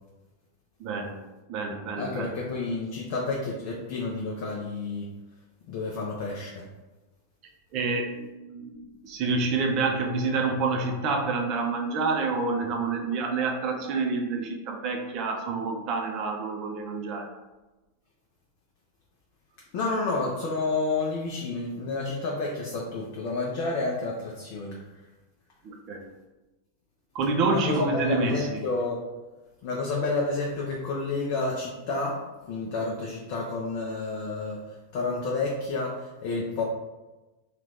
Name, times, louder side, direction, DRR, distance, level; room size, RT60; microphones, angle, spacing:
voice 1, 0.8-1.2 1.5-2.3 7.7-17.3 25.6-26.0 27.1-28.6, right 3 dB, 40° right, 2 dB, 0.6 m, -28 dB
voice 2, 2.0-5.1 5.7-6.7 19.7-24.8 27.5-29.0 29.6-36.6, left 3 dB, 45° left, -3 dB, 0.5 m, -30 dB
2.8 x 2.4 x 3.4 m, 1.1 s
figure-of-eight pair, 90°, 0 cm